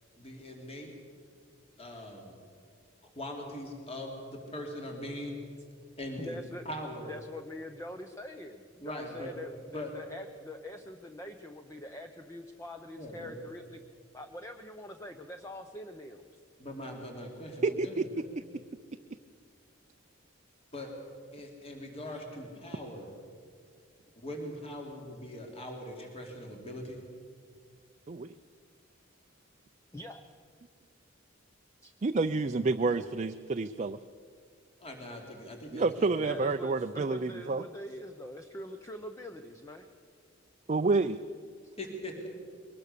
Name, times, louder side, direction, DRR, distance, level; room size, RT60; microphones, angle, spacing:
voice 1, 0.2-0.9 1.8-2.4 3.0-5.4 6.0-6.4 6.6-7.2 8.8-9.3 9.7-9.9 13.0-13.4 16.6-18.3 20.7-20.9 21.3-23.1 24.2-27.0 34.8-36.3 41.8-42.3, left 1 dB, 30° left, 1 dB, 2.9 m, -41 dB
voice 2, 6.2-6.7 7.1-13.8 14.1-16.3 29.9-30.2 31.8-31.9 36.2-39.9 41.6-41.7, left 1 dB, 15° left, 6 dB, 0.7 m, -44 dB
voice 3, 17.6-18.1 28.1-28.3 32.0-34.0 35.7-37.6 40.7-41.2, right 3 dB, 35° right, 7 dB, 0.5 m, -29 dB
22.5 x 19.0 x 6.7 m, 2.1 s
head